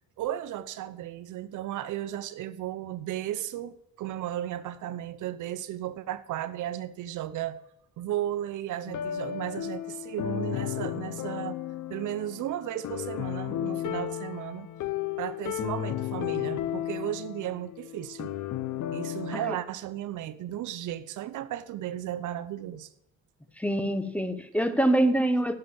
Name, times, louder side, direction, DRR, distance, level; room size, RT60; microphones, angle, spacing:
voice 1, 0.2-7.6 8.0-11.6 11.9-14.7 15.2-18.3 18.9-22.9, right 12 dB, 80° right, 13 dB, 0.8 m, -35 dB
sound 1, 8.9-19.5, left 11 dB, 75° left, 0.9 m, -34 dB
voice 2, 23.6-25.6, right 1 dB, 5° left, 11 dB, 1.0 m, -25 dB
11.0 x 6.8 x 7.1 m, 0.79 s
cardioid pair, 90°, 30 cm